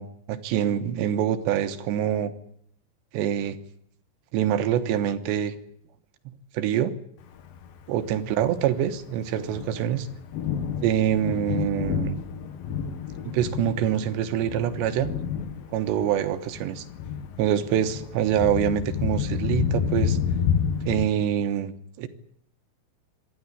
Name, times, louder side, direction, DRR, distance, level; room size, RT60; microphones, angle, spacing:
voice 1, 0.0-2.3 3.1-3.6 4.3-5.5 6.5-6.9 7.9-10.1 10.8-12.2 13.3-15.1 15.7-16.8 17.4-20.2 20.9-22.1, right 10 dB, 80° right, 9 dB, 3.4 m, -25 dB
Thunder, 7.4-21.0, left 8 dB, 65° left, 2.9 m, -30 dB
25.5 x 12.0 x 9.8 m, 0.72 s
omnidirectional pair, 5.1 m